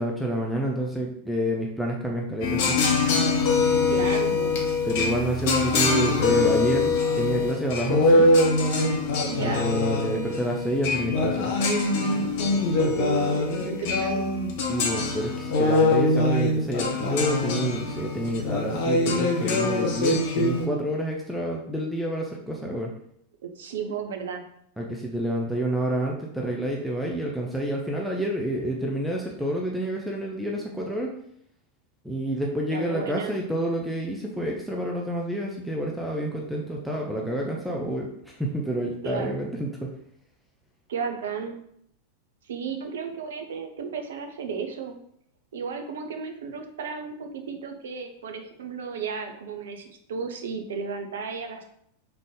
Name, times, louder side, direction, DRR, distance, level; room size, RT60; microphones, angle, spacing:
voice 1, 0.0-2.8 4.8-8.2 9.4-11.5 14.7-22.9 24.8-31.1 32.0-39.9, right 1 dB, ahead, -2 dB, 0.6 m, -28 dB
sound 1, 2.4-20.7, left 3 dB, 50° left, 0.8 m, -23 dB
voice 2, 3.9-4.6 9.2-9.7 12.8-14.3 23.4-24.4 32.7-33.3 39.0-39.4 40.9-41.6 42.5-44.9 45.5-51.6, right 5 dB, 60° right, 5 dB, 0.6 m, -33 dB
3.6 x 3.3 x 3.7 m, 0.70 s
figure-of-eight pair, 90°, 0 cm